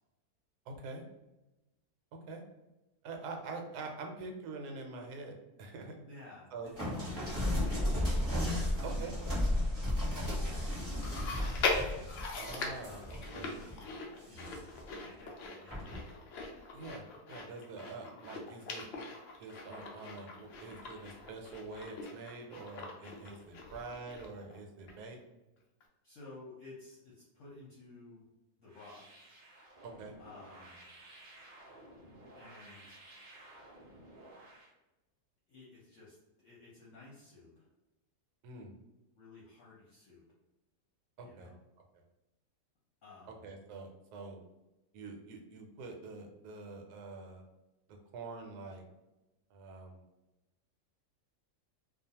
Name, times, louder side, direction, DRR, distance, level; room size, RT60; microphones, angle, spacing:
voice 1, 0.7-1.1 2.3-2.4 3.0-6.0 6.5-6.7 8.8-9.1 12.4-13.5 16.7-18.9 19.4-25.2 29.8-30.1 38.4-38.7 41.2-41.5 43.4-44.4 44.9-47.4 47.9-48.8 49.5-50.1, right 3 dB, 85° right, 3 dB, 1.1 m, -45 dB
voice 2, 6.0-8.0 8.4-9.1 9.4-11.6 12.8-13.2 13.5-13.9 14.3-14.6 15.0-16.0 26.0-28.2 28.6-29.0 30.2-30.8 32.4-33.0 35.5-37.7 39.2-40.2 41.2-41.5 43.0-43.5, left 3 dB, 60° left, -7 dB, 0.9 m, -54 dB
sound 1, 6.8-13.7 14.2-14.8 15.7-16.0, left 1 dB, 15° right, 0.9 m, -34 dB
Chewing mastication, 11.0-24.6 24.9-25.0 25.8-25.9, left 3 dB, 85° left, 0.5 m, -41 dB
sound 2, 28.7-34.7, right 1 dB, 60° right, 0.5 m, -55 dB
2.4 x 2.3 x 2.7 m, 1.0 s
omnidirectional pair, 1.7 m